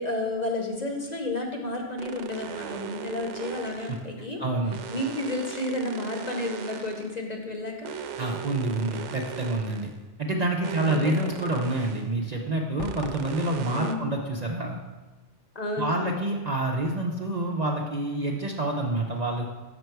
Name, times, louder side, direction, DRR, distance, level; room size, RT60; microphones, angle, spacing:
voice 1, 0.0-4.4 4.9-7.9 10.8-11.3 13.7-14.1 15.5-16.0, left 2 dB, 40° left, 1 dB, 0.9 m, -31 dB
sound 1, 2.0-4.1 4.7-7.2 7.8-10.0 10.6-12.1 12.8-13.9, right 7 dB, 80° right, 0.9 m, -38 dB
voice 2, 4.4-4.7 8.2-9.9 10.2-14.8 15.8-19.5, right 2 dB, 45° right, 0 dB, 0.6 m, -27 dB
sound 2, 12.8-13.3, left 1 dB, 85° left, 1.1 m, -37 dB
6.5 x 6.0 x 4.5 m, 1.2 s
omnidirectional pair, 1.2 m